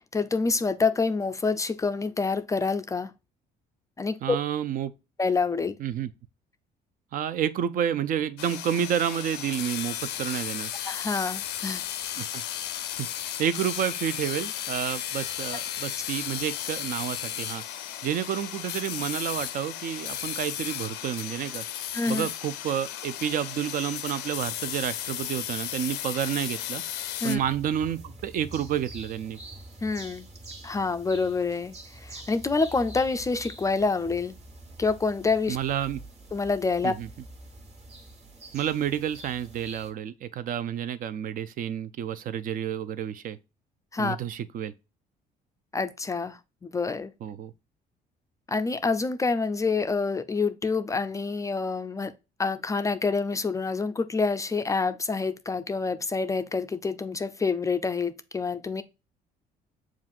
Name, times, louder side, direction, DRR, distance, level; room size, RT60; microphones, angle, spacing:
voice 1, 0.1-3.1 4.0-4.4 5.2-5.8 10.9-11.8 21.9-22.3 27.2-27.4 29.8-30.3 30.6-34.4 34.8-35.6 36.3-36.9 43.9-44.2 45.7-47.1 48.5-52.1 52.4-58.8, left 4 dB, 20° left, 0.3 m, -27 dB
voice 2, 4.2-4.9 5.8-6.1 7.1-10.7 12.2-12.4 13.0-17.6 18.0-21.6 22.1-26.8 27.2-29.4 35.5-36.0 36.8-37.1 38.5-43.4 44.0-44.7 47.2-47.5, right 9 dB, 55° right, 0.4 m, -30 dB
sound 1, 8.4-27.4, left 11 dB, 85° left, 0.5 m, -34 dB
sound 2, 27.4-39.9, right 1 dB, 40° right, 1.3 m, -46 dB
7.2 x 2.4 x 2.4 m
cardioid pair, 110°, 17 cm